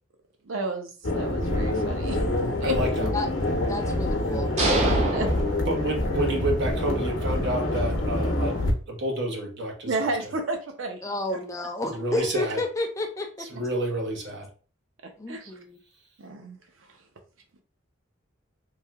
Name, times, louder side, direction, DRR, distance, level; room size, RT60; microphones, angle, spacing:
voice 1, 0.4-2.2 2.6-2.8 4.8-5.3 9.8-11.4 15.0-15.6 16.2-17.0, right 3 dB, 85° right, 4 dB, 0.6 m, -32 dB
sound 1, 1.0-8.7, left 1 dB, 80° left, 0.8 m, -26 dB
voice 2, 2.6-3.2 5.7-8.6 8.9-10.1 11.9-12.6 13.4-14.5, right 1 dB, 60° right, 1 dB, 0.9 m, -29 dB
voice 3, 3.6-4.5 11.0-13.5 15.2-15.8, left 2 dB, 15° left, 3 dB, 0.4 m, -31 dB
sound 2, 4.6-6.4, right 2 dB, 35° right, 0.6 m, -27 dB
3.2 x 2.7 x 2.2 m, 0.38 s
head